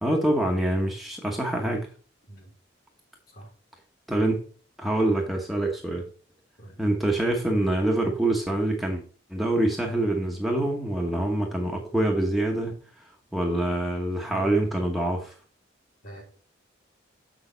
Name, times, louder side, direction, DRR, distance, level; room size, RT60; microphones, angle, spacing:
voice 1, 0.0-1.9 4.1-4.4 4.8-6.1 6.8-9.0 9.3-12.8 13.3-15.3, right 1 dB, ahead, -1 dB, 1.0 m, -25 dB
voice 2, 2.3-2.5 3.3-3.5 6.6-6.8 14.3-14.5 16.0-16.2, right 1 dB, 50° left, 0 dB, 3.2 m, -42 dB
6.9 x 6.4 x 3.9 m, 0.41 s
head